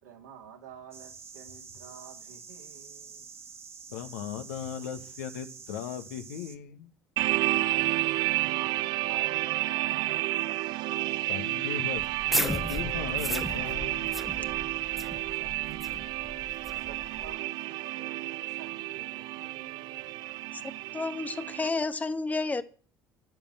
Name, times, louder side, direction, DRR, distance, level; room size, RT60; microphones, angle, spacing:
voice 1, 0.0-3.3 7.5-10.5 15.3-16.1 16.8-20.1, right 8 dB, 75° right, 2.7 m, -50 dB
sound 1, 0.9-6.6, right 5 dB, 30° right, 1.7 m, -47 dB
voice 2, 3.9-6.9 11.3-14.8, left 9 dB, 65° left, 1.3 m, -38 dB
sound 2, 7.2-21.7, right 18 dB, 55° right, 0.6 m, -31 dB
sound 3, 12.0-17.3, equal, ahead, 1.3 m, -35 dB
voice 3, 20.9-22.6, left 3 dB, 15° left, 1.2 m, -30 dB
16.0 x 7.1 x 7.9 m
figure-of-eight pair, 55°, 9 cm